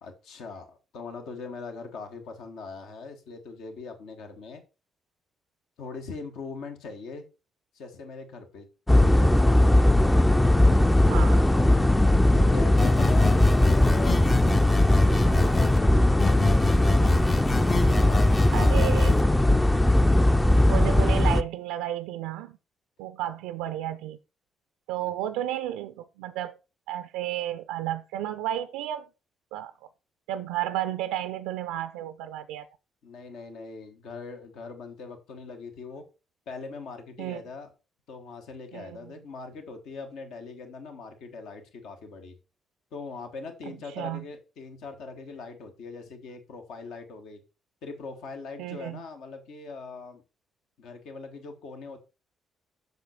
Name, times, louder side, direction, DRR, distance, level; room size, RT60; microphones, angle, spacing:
voice 1, 0.0-4.6 5.8-7.3 7.7-8.7 9.0-9.7 12.3-14.2 14.8-17.2 17.6-18.9 23.2-23.3 33.0-36.0 36.5-37.7 38.1-42.3 42.9-47.4 47.8-50.2 50.8-52.0, left 4 dB, 60° left, 1.4 m, -41 dB
sound 1, 8.9-21.4, left 1 dB, 10° left, 0.5 m, -19 dB
voice 2, 11.1-11.4 18.5-19.2 20.7-22.6 23.0-24.2 24.9-26.6 26.9-29.1 29.5-29.7 30.3-32.7 37.2-37.4 38.7-39.1 43.9-44.2 48.6-49.0, right 12 dB, 70° right, 0.4 m, -32 dB
sound 2, 12.8-15.8 16.2-19.2, left 3 dB, 35° left, 0.9 m, -28 dB
7.8 x 6.6 x 4.3 m
figure-of-eight pair, 40°, 0 cm